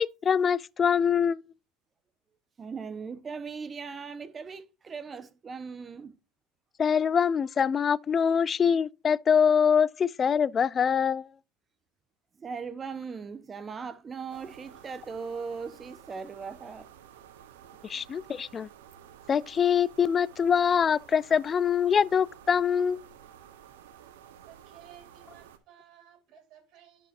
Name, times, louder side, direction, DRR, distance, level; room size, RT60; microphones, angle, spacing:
voice 1, 0.0-1.4 6.8-11.3 17.8-18.7 19.3-23.1, left 7 dB, 30° left, 0.3 m, -24 dB
voice 2, 2.6-6.1 12.4-16.9, right 5 dB, 30° right, 1.0 m, -39 dB
sound 1, 14.3-25.6, right 9 dB, 80° right, 0.9 m, -52 dB
voice 3, 24.4-27.1, right 10 dB, 55° right, 3.8 m, -55 dB
11.5 x 5.4 x 2.6 m
hypercardioid pair, 90°, 0 cm